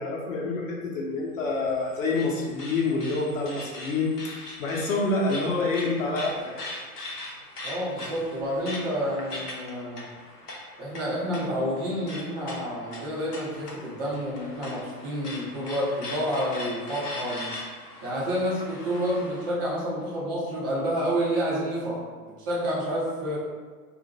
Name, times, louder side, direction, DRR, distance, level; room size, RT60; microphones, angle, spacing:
voice 1, 0.0-6.5, left 3 dB, 55° left, -3 dB, 0.8 m, -27 dB
sound 1, 1.4-19.6, left 2 dB, 90° left, 0.8 m, -41 dB
voice 2, 7.6-10.0 10.8-17.5 18.0-23.4, equal, 15° right, -6 dB, 0.3 m, -29 dB
2.5 x 2.1 x 3.9 m, 1.5 s
figure-of-eight pair, 105°, 45 cm